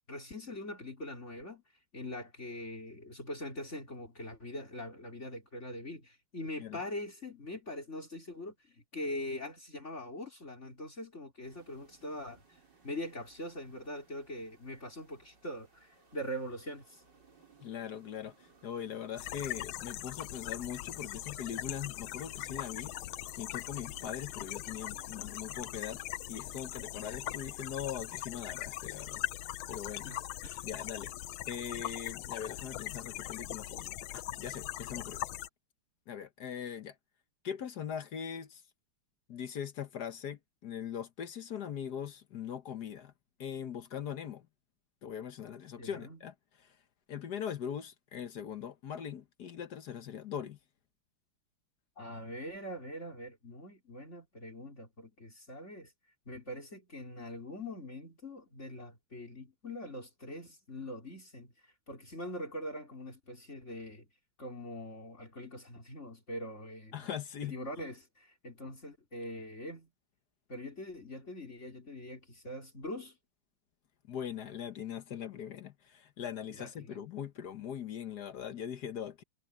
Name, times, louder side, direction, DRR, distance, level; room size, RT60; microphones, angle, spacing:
voice 1, 0.1-1.6 1.9-12.4 12.8-17.0 29.9-30.6 45.8-46.2 52.0-55.9 56.3-61.5 61.9-64.1 64.4-67.1 67.4-69.9 70.5-73.2 76.6-77.0, left 1 dB, 30° left, 4.3 m, -43 dB
sound 1, 11.4-28.2, right 4 dB, 50° right, 5.1 m, -62 dB
voice 2, 17.6-22.9 23.4-26.0 26.3-30.1 30.6-31.1 31.5-35.2 36.1-37.0 37.4-38.6 39.3-43.1 43.4-44.5 45.0-46.8 47.1-50.6 66.9-67.5 74.0-79.2, left 8 dB, 55° left, 1.4 m, -41 dB
sound 2, 19.2-35.5, left 14 dB, 75° left, 1.5 m, -41 dB
omnidirectional pair, 2.4 m